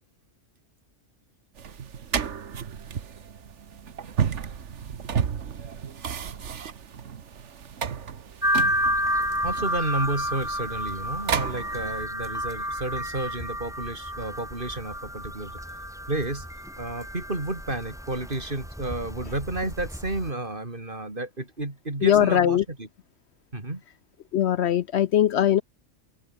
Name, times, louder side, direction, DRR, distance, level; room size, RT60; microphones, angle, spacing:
sound 1, 1.6-12.0, right 7 dB, 65° right, 1.5 m, -33 dB
sound 2, 8.4-20.3, equal, ahead, 3.0 m, -31 dB
voice 1, 9.4-15.6 16.1-16.5 16.8-22.9 23.5-23.8, right 2 dB, 40° right, 4.0 m, -31 dB
voice 2, 22.0-22.6 24.3-25.6, left 10 dB, 65° left, 0.8 m, -20 dB
open air
omnidirectional pair, 1.3 m